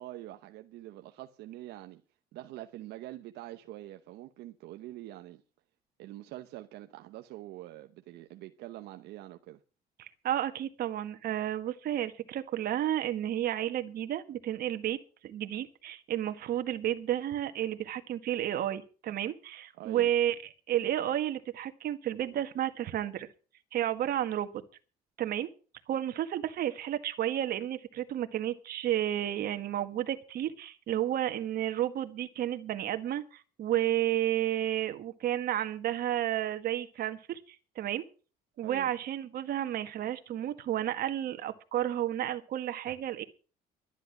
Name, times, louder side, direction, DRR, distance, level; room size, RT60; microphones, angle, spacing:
voice 1, 0.0-2.0 2.3-5.4 6.0-9.6 19.8-20.1 38.6-38.9, right 15 dB, 85° right, 1.0 m, -45 dB
voice 2, 10.0-15.0 15.2-20.3 20.7-23.3 23.7-24.5 25.2-25.5 25.9-38.0 38.6-43.2, right 12 dB, 65° right, 1.7 m, -32 dB
12.5 x 10.5 x 6.0 m
cardioid pair, 110°, 17 cm